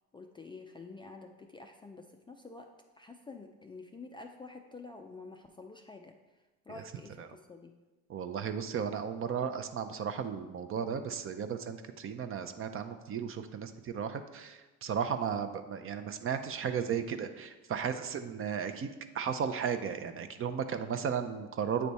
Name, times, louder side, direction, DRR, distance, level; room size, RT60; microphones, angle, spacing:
voice 1, 0.1-7.7, left 3 dB, 15° left, 4 dB, 0.3 m, -49 dB
voice 2, 8.1-21.9, right 7 dB, 35° right, 9 dB, 0.5 m, -35 dB
8.4 x 3.3 x 4.1 m, 1.2 s
supercardioid pair, 85°, 36 cm